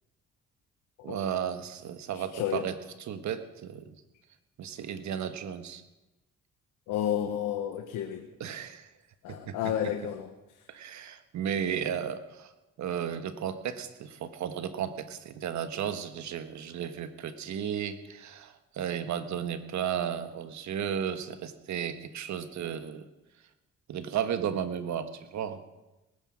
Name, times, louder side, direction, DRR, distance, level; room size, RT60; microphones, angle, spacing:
voice 1, 1.0-2.7 3.1-3.9 4.6-5.8 8.4-8.9 9.3-9.7 10.7-12.5 12.8-23.1 23.9-25.6, right 8 dB, 70° right, 10 dB, 1.4 m, -34 dB
voice 2, 2.1-2.6 6.9-8.3 9.2-10.3, left 10 dB, 90° left, 5 dB, 1.2 m, -31 dB
19.5 x 9.9 x 6.3 m, 1.0 s
cardioid pair, 90°, 30 cm